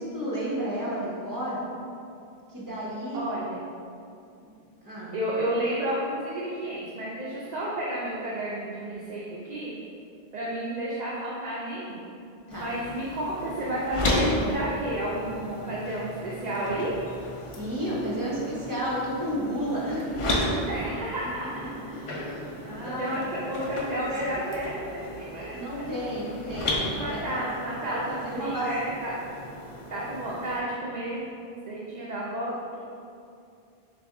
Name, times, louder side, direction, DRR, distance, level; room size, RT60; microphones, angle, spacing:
voice 1, 0.0-1.6 2.5-3.2 4.8-5.1 12.5-12.7 17.5-20.7 21.2-23.4 25.4-27.5 27.8-28.7, equal, 20° right, -7 dB, 0.9 m, -32 dB
voice 2, 3.1-3.6 5.1-9.7 10.3-12.0 12.6-16.9 20.6-21.5 22.6-25.6 27.0-29.1 29.9-32.8, right 1 dB, 50° right, -6 dB, 0.6 m, -31 dB
sound 1, 12.5-30.6, left 1 dB, 45° left, 0.4 m, -34 dB
3.4 x 3.3 x 3.5 m, 2.5 s
omnidirectional pair, 1.1 m